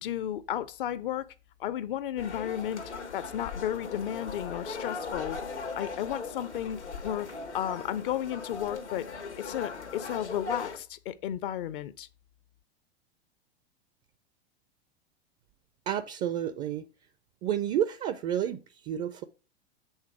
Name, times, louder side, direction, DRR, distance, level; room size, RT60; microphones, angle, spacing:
voice 1, 0.0-1.3 1.6-2.8 3.1-5.4 5.8-7.3 7.5-9.1 9.4-12.1, left 11 dB, 55° left, 0.6 m, -33 dB
sound 1, 2.2-10.8, left 4 dB, 85° left, 1.3 m, -39 dB
voice 2, 15.9-16.9 17.4-19.2, right 10 dB, 25° right, 0.4 m, -30 dB
8.0 x 3.4 x 4.8 m
figure-of-eight pair, 90°, 33 cm